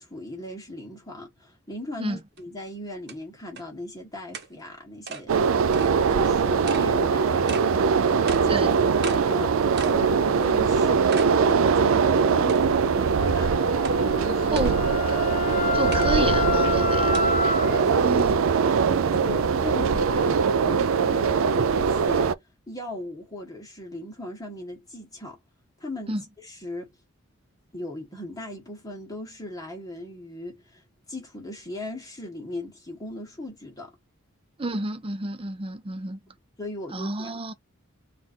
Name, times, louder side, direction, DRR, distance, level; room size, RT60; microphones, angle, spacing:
voice 1, 0.0-8.5 9.0-9.6 9.8-13.6 14.0-14.7 15.5-15.8 17.0-17.3 17.6-18.0 18.6-22.3 22.7-25.4 25.8-26.9 27.7-33.9 36.6-37.5, left 1 dB, 20° left, 1.2 m, -38 dB
sound 1, 2.4-2.5 3.1-3.2 3.6-3.7 4.3-4.5 5.1-5.2 5.7-5.9 6.7-6.9 7.5-7.7 8.3-8.5 9.0-9.2 9.8-10.0 10.4-10.5 11.1-11.3 11.8-11.9 12.5-12.9 13.8-14.0 14.6-14.7 15.9-16.1 17.1-17.2, right 4 dB, 55° right, 1.1 m, -35 dB
sound 2, 5.3-22.3, right 5 dB, 75° right, 0.4 m, -22 dB
Wind instrument woodwind instrument, 13.2-17.9, left 5 dB, 35° left, 1.0 m, -29 dB
voice 2, 15.7-17.2 18.0-18.3 26.1-26.2 34.6-36.2 36.9-37.5, right 2 dB, 25° right, 0.6 m, -30 dB
3.7 x 2.5 x 4.3 m
head